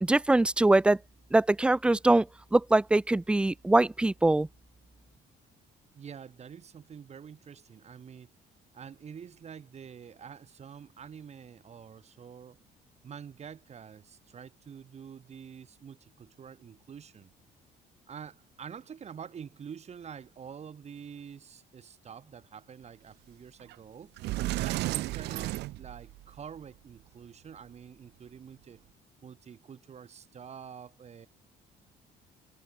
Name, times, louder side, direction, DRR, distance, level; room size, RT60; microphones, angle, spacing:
voice 1, 0.0-1.0 1.3-2.3 2.5-4.5, right 2 dB, 5° right, 0.3 m, -23 dB
voice 2, 5.9-8.3 8.7-12.6 13.0-17.3 18.1-24.1 24.6-28.8 29.2-31.3, right 7 dB, 40° right, 2.8 m, -47 dB
Sliding door, 23.7-23.8 24.2-26.4, right 18 dB, 85° right, 1.8 m, -33 dB
cardioid pair, 110°, 17 cm